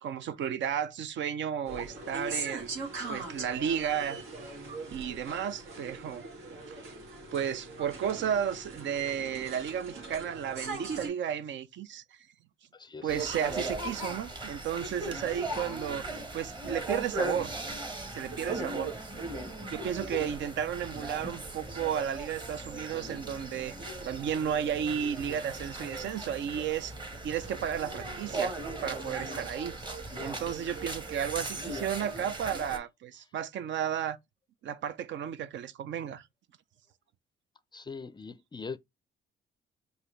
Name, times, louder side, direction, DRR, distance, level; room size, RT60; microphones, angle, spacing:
voice 1, 0.0-2.7 3.1-4.2 4.9-6.2 6.7-6.8 7.3-12.3 13.0-16.0 16.3-17.6 18.1-18.9 19.7-26.9 27.2-28.5 28.8-29.7 30.2-34.2 34.6-36.3, right 9 dB, 65° right, 0.6 m, -33 dB
sound 1, 1.7-11.1, right 3 dB, 90° right, 1.7 m, -40 dB
voice 2, 12.7-13.3 37.7-38.8, left 4 dB, 20° left, 0.4 m, -42 dB
sound 2, 13.1-32.8, right 2 dB, 25° right, 1.2 m, -38 dB
4.8 x 2.6 x 3.1 m
cardioid pair, 90°, 20 cm